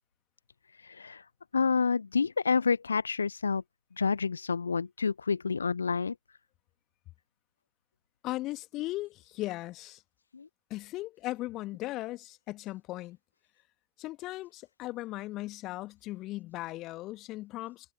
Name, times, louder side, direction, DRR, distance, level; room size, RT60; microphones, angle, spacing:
voice 1, 0.8-1.2 1.5-3.6 4.0-6.1 10.3-10.5, left 5 dB, 75° left, 0.8 m, -28 dB
voice 2, 8.2-10.0 10.7-13.2 14.0-17.9, left 17 dB, 35° left, 1.9 m, -37 dB
figure-of-eight pair, 90°, 0 cm